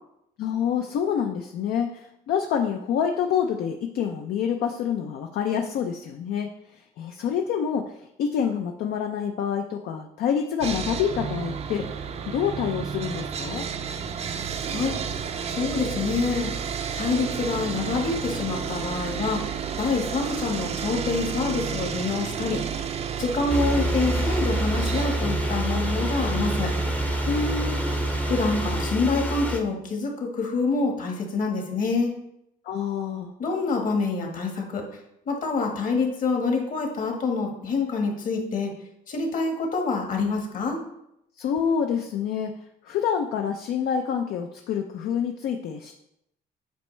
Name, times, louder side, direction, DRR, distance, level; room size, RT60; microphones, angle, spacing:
voice 1, 0.4-13.7 27.2-27.8 32.6-33.4 41.4-42.6 42.8-45.9, left 7 dB, 65° left, 4 dB, 0.6 m, -27 dB
Sawing, 10.6-28.9, right 7 dB, 40° right, 0.5 m, -32 dB
voice 2, 15.5-16.5 17.0-19.4 19.7-22.6 23.2-26.7 28.3-32.1 33.4-34.8 35.3-38.7 39.1-40.8, left 4 dB, 50° left, 2 dB, 1.5 m, -26 dB
sound 1, 23.5-29.6, equal, 10° left, 0.7 m, -26 dB
8.1 x 4.5 x 3.2 m, 0.79 s
cardioid pair, 110°, 17 cm